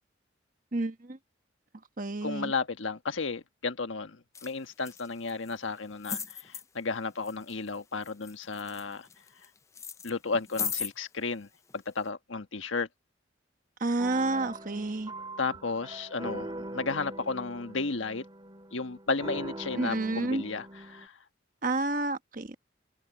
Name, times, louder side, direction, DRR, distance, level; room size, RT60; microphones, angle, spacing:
voice 1, 0.7-1.2 2.0-2.5 13.8-15.1 19.8-20.4 21.6-22.6, right 2 dB, 45° right, 1.1 m, -30 dB
voice 2, 2.2-9.1 10.0-11.5 11.7-12.9 15.4-18.2 18.7-21.2, left 4 dB, 90° left, 1.4 m, -33 dB
sound 1, 4.4-4.5 4.8-5.5 6.0-6.6 7.2-7.8 8.0-9.5 9.8-10.9 11.7-11.8, left 6 dB, 15° left, 0.4 m, -36 dB
sound 2, 14.0-21.1, right 1 dB, 25° right, 2.4 m, -42 dB
head